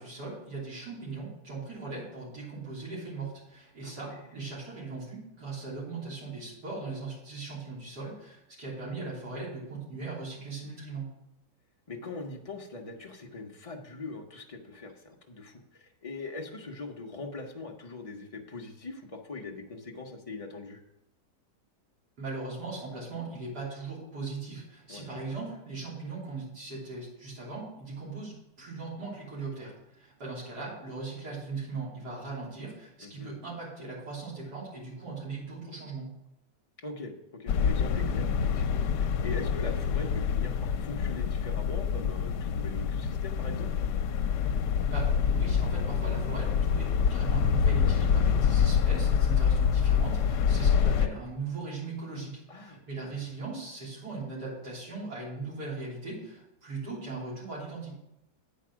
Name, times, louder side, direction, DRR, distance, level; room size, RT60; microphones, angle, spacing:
voice 1, 0.0-11.1 22.2-36.1 44.9-57.9, right 3 dB, 60° right, -5 dB, 3.7 m, -39 dB
voice 2, 3.8-4.2 11.9-20.8 24.9-25.3 33.0-33.4 36.8-43.7 52.5-53.2, left 3 dB, 55° left, 1 dB, 0.3 m, -42 dB
sound 1, 37.5-51.1, left 7 dB, 75° left, 1.2 m, -26 dB
8.7 x 5.3 x 6.1 m, 0.85 s
omnidirectional pair, 1.9 m